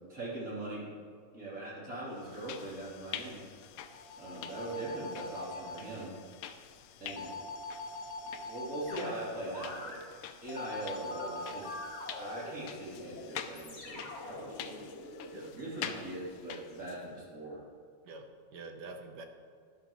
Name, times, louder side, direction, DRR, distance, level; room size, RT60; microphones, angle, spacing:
voice 1, 0.1-0.9 1.3-3.4 4.2-6.1 7.0-7.3 8.4-10.0 10.4-11.7 12.2-14.8 15.5-17.6, right 1 dB, 50° right, -7 dB, 3.5 m, -41 dB
sound 1, 2.2-17.1, left 9 dB, 90° left, 1.3 m, -47 dB
sound 2, 3.9-5.8 7.1-9.1 10.5-12.5, left 2 dB, 60° left, 1.1 m, -43 dB
sound 3, 8.9-10.0 11.1-15.5, left 1 dB, 35° left, 2.3 m, -45 dB
voice 2, 18.0-19.3, right 3 dB, 70° right, 5 dB, 1.6 m, -47 dB
12.0 x 11.0 x 3.1 m, 2.1 s
omnidirectional pair, 1.9 m